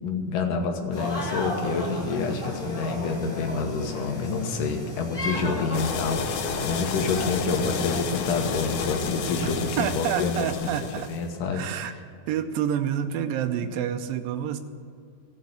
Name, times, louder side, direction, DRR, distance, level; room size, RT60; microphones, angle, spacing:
voice 1, 0.0-10.7 11.1-11.6, left 4 dB, 70° left, 4 dB, 2.8 m, -28 dB
sound 1, 0.9-9.7, left 1 dB, 15° left, 2.2 m, -34 dB
sound 2, 5.7-11.2, left 6 dB, 90° left, 2.8 m, -31 dB
voice 2, 9.8-11.1 11.5-12.0 12.3-14.6, right 9 dB, 85° right, 7 dB, 2.4 m, -28 dB
15.0 x 6.5 x 9.8 m, 2.3 s
omnidirectional pair, 4.0 m